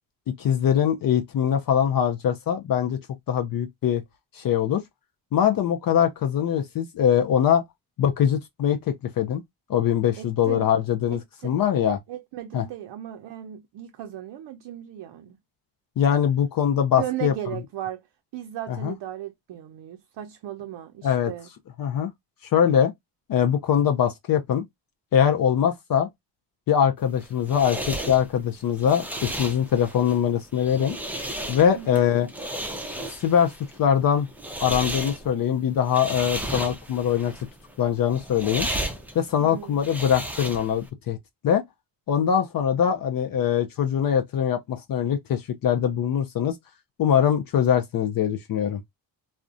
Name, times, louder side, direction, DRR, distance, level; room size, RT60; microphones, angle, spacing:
voice 1, 0.4-3.0 3.3-4.0 4.3-4.8 5.3-7.6 8.0-9.4 9.7-12.0 12.5-12.6 16.0-17.3 18.7-18.9 21.0-21.3 21.8-22.1 22.5-22.9 23.3-24.6 25.1-26.1 26.7-31.0 31.5-32.3 33.1-33.5 33.8-34.3 34.6-37.3 37.8-38.7 39.1-41.2 41.4-41.6 42.1-46.6 47.0-48.8, left 9 dB, 50° left, 0.5 m, -22 dB
voice 2, 10.2-10.7 11.1-11.6 12.1-15.4 17.0-18.0 18.3-21.5 31.8-32.0 39.4-39.8, right 12 dB, 65° right, 0.5 m, -36 dB
sound 1, 27.0-40.9, right 1 dB, 5° right, 0.5 m, -34 dB
2.4 x 2.1 x 2.4 m
cardioid pair, 75°, 46 cm